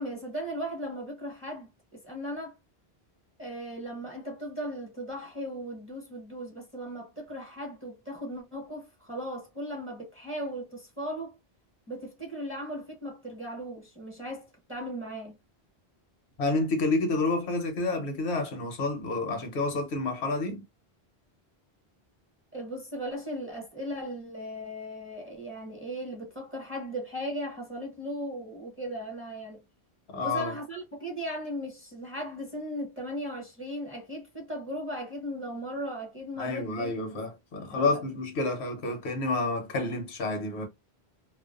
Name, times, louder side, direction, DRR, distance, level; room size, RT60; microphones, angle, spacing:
voice 1, 0.0-2.6 3.4-11.4 11.9-15.3 22.5-29.6 30.2-36.9 37.7-38.0, equal, 15° right, 0.8 m, -37 dB
voice 2, 16.4-20.6 30.1-30.5 36.4-40.7, left 3 dB, 80° left, 1.0 m, -29 dB
2.4 x 2.2 x 2.3 m
omnidirectional pair, 1.1 m